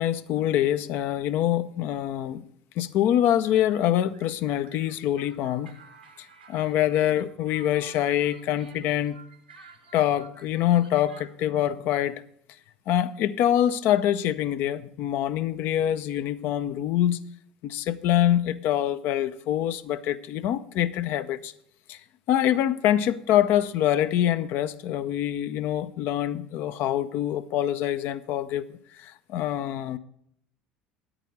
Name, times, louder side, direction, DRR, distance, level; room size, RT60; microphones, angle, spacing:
voice 1, 0.0-2.5 2.8-5.7 6.5-9.2 9.9-12.2 12.9-17.2 17.6-21.5 21.9-22.0 22.3-28.6 29.0-30.0, left 11 dB, 50° left, 12 dB, 0.6 m, -25 dB
voice 2, 5.8-6.7 7.6-7.9 8.2-8.3 8.6-10.0, right 5 dB, 85° right, 6 dB, 1.6 m, -50 dB
9.9 x 8.9 x 4.9 m, 0.70 s
figure-of-eight pair, 65°, 5 cm